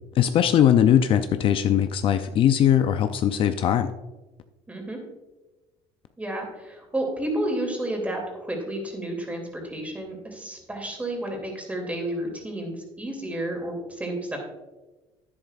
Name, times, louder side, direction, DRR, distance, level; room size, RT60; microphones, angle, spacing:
voice 1, 0.2-3.9, left 10 dB, 50° left, 9 dB, 0.4 m, -20 dB
voice 2, 4.7-5.0 6.2-14.4, right 1 dB, 10° right, 1 dB, 2.6 m, -31 dB
10.5 x 9.6 x 2.4 m, 1.1 s
cardioid pair, 110°, 11 cm